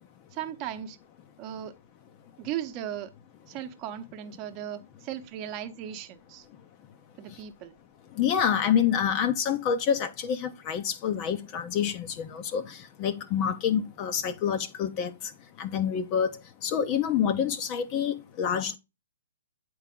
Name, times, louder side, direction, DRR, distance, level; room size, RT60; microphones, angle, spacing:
voice 1, 0.3-1.0 1.4-1.8 2.4-3.1 3.5-6.5 7.2-7.7, right 11 dB, 30° right, 0.9 m, -37 dB
voice 2, 8.2-15.3 15.6-16.3 16.6-18.8, left 8 dB, 35° left, 0.7 m, -27 dB
8.2 x 4.7 x 3.7 m
hypercardioid pair, 130°, 0 cm